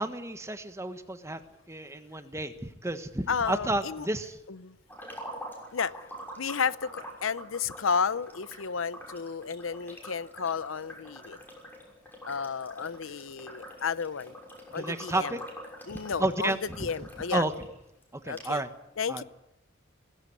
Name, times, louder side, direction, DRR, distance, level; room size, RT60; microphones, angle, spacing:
voice 1, 0.0-1.4 1.7-4.4 14.7-15.4 16.2-16.9 17.3-17.5 18.2-18.7 19.1-19.2, right 2 dB, 15° right, 9 dB, 1.4 m, -31 dB
voice 2, 3.3-4.1 4.5-4.8 5.7-6.1 6.4-11.4 12.2-14.3 14.7-15.4 15.9-17.4 18.2-18.6 19.0-19.2, left 6 dB, 85° left, 17 dB, 0.7 m, -32 dB
sound 1, 4.9-17.7 18.0-18.1 18.4-18.5, equal, 10° left, 6.1 m, -45 dB
18.5 x 16.5 x 9.8 m, 0.89 s
head